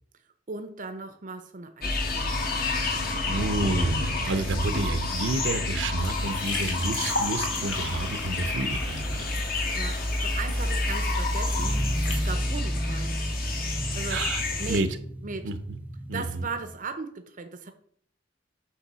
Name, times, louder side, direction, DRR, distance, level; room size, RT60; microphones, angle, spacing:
voice 1, 0.5-2.6 9.8-13.2 13.9-14.3 14.6-14.8 15.2-15.5 16.1-17.7, right 4 dB, 45° right, 8 dB, 0.7 m, -37 dB
sound 1, 1.8-14.8, left 2 dB, 50° left, 1.6 m, -28 dB
voice 2, 3.2-9.2 14.1-14.9 15.4-15.8 16.1-16.5, right 2 dB, 75° right, 10 dB, 0.8 m, -30 dB
sound 2, 6.0-12.3, left 2 dB, 70° left, 2.1 m, -36 dB
sound 3, 11.5-16.8, right 1 dB, 10° right, 0.4 m, -37 dB
8.4 x 3.3 x 6.1 m, 0.63 s
head